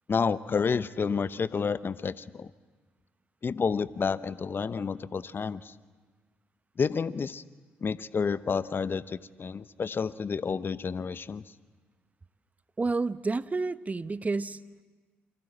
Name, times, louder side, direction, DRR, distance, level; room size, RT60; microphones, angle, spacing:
voice 1, 0.1-2.5 3.4-5.7 6.8-7.4 7.8-11.4, left 5 dB, 40° left, 16 dB, 0.9 m, -30 dB
voice 2, 12.8-14.6, right 3 dB, 25° right, 14 dB, 1.0 m, -29 dB
28.0 x 24.5 x 8.0 m, 1.4 s
hypercardioid pair, 45°, 6 cm